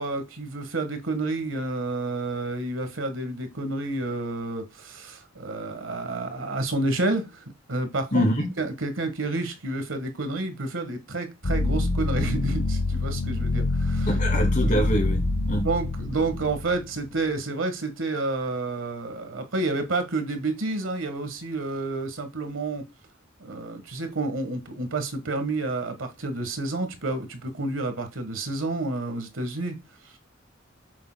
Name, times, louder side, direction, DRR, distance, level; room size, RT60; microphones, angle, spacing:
voice 1, 0.0-7.4 7.7-8.2 8.6-14.1 14.6-14.8 15.5-22.8 23.4-29.8, right 2 dB, 85° right, 1.5 m, -29 dB
voice 2, 8.1-8.5 14.1-15.2 15.5-15.7, equal, 40° left, 2.4 m, -24 dB
sound 1, 11.4-17.2, left 2 dB, 60° left, 1.3 m, -26 dB
7.6 x 6.8 x 2.2 m
head